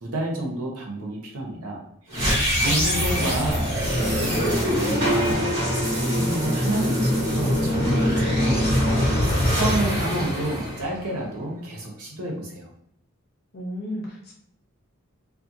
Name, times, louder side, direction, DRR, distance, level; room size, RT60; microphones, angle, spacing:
voice 1, 0.0-1.8 2.5-3.7 3.9-5.4 5.9-9.0 9.5-12.7, right 1 dB, 85° right, -1 dB, 0.8 m, -29 dB
sound 1, 2.1-11.3, equal, 55° right, 1.2 m, -23 dB
voice 2, 2.6-3.3 13.5-14.3, equal, 45° left, -2 dB, 0.7 m, -33 dB
2.8 x 2.4 x 2.6 m, 0.72 s
head